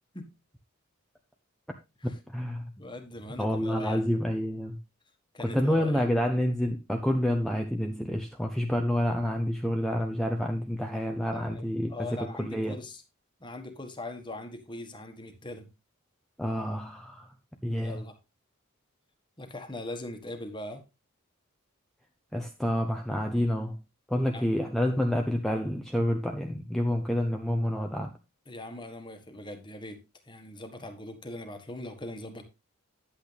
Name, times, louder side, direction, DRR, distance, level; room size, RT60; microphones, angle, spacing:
voice 1, 2.0-2.7 3.4-4.8 5.4-12.8 16.4-17.3 17.6-18.0 22.3-23.8 24.1-28.1, equal, ahead, 2 dB, 0.8 m, -28 dB
voice 2, 2.8-4.0 5.3-6.1 11.3-13.0 13.4-15.7 17.8-18.1 19.4-20.8 24.3-24.5 28.5-30.0 30.2-32.4, left 1 dB, 20° left, 7 dB, 1.5 m, -41 dB
10.0 x 8.6 x 3.4 m, 0.25 s
head